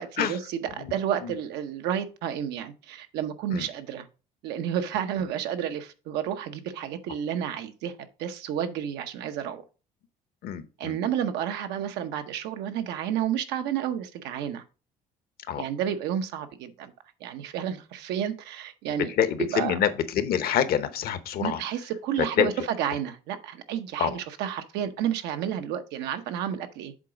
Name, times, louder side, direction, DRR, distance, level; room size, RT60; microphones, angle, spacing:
voice 1, 0.0-4.1 4.4-7.9 8.2-9.6 10.8-14.6 15.6-16.9 17.2-19.1 19.5-19.7 21.4-26.9, right 9 dB, 90° right, 0.8 m, -31 dB
voice 2, 10.4-11.0 15.5-15.6 19.1-21.6 22.2-22.5 24.0-24.2, left 9 dB, 65° left, 0.9 m, -26 dB
7.4 x 3.9 x 4.9 m
cardioid pair, 110°, 17 cm